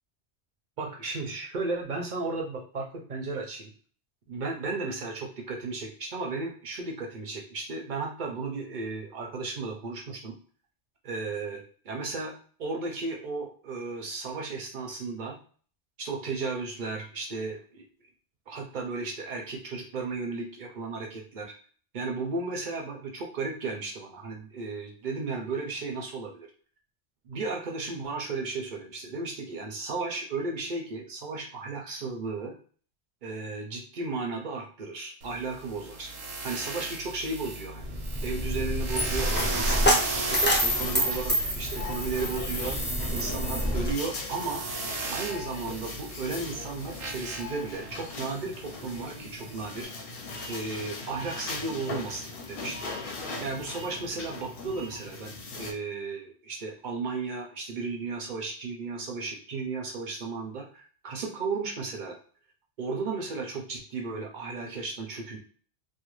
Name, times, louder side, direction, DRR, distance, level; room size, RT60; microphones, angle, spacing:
voice 1, 0.8-3.7 4.3-10.3 11.0-12.3 12.6-15.4 16.0-17.8 18.5-21.5 21.9-26.5 27.3-32.5 33.2-36.1 36.4-37.9 38.2-44.6 45.1-49.9 50.5-52.9 53.4-62.2 62.8-65.4, right 3 dB, 55° right, 1 dB, 0.6 m, -34 dB
sound 1, 35.2-49.8, right 3 dB, 80° right, 0.9 m, -37 dB
Coin (dropping), 37.8-43.9, equal, 15° left, 0.4 m, -27 dB
sound 2, 40.7-55.7, left 3 dB, 60° left, 0.8 m, -40 dB
2.4 x 2.1 x 3.0 m, 0.43 s
omnidirectional pair, 1.2 m